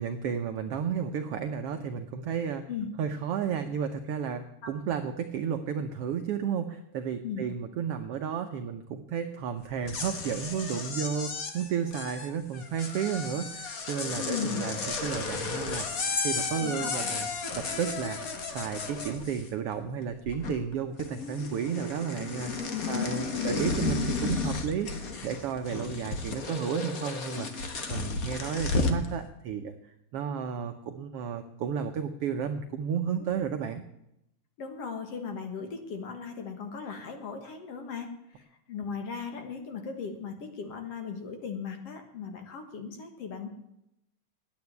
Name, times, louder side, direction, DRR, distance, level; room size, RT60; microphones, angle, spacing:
voice 1, 0.0-2.6 3.0-17.3 17.6-18.2 18.5-24.9 25.2-33.8, right 7 dB, 90° right, 7 dB, 1.3 m, -32 dB
sound 1, 9.7-19.7 20.0-20.7 21.0-29.1, left 4 dB, 80° left, 0.7 m, -33 dB
voice 2, 14.1-14.7 16.6-17.1 22.8-23.0 23.3-23.6 34.6-43.5, left 6 dB, 55° left, 6 dB, 2.1 m, -37 dB
9.6 x 8.9 x 9.4 m, 0.82 s
omnidirectional pair, 3.6 m